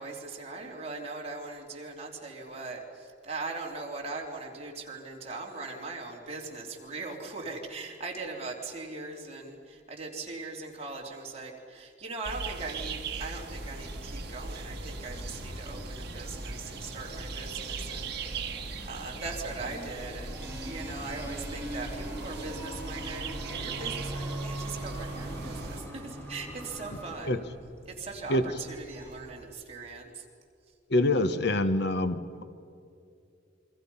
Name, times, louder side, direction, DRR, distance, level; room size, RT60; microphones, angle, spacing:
voice 1, 0.0-27.4 27.9-30.3, right 3 dB, 35° right, 0 dB, 3.5 m, -40 dB
sound 1, 12.2-25.8, right 4 dB, 60° right, 1.6 m, -39 dB
sound 2, 13.3-27.2, equal, 15° left, 3.0 m, -45 dB
sound 3, 20.4-29.4, right 1 dB, 15° right, 4.9 m, -43 dB
voice 2, 30.9-32.4, left 1 dB, 60° left, 11 dB, 1.1 m, -26 dB
28.0 x 24.0 x 5.6 m, 2.5 s
head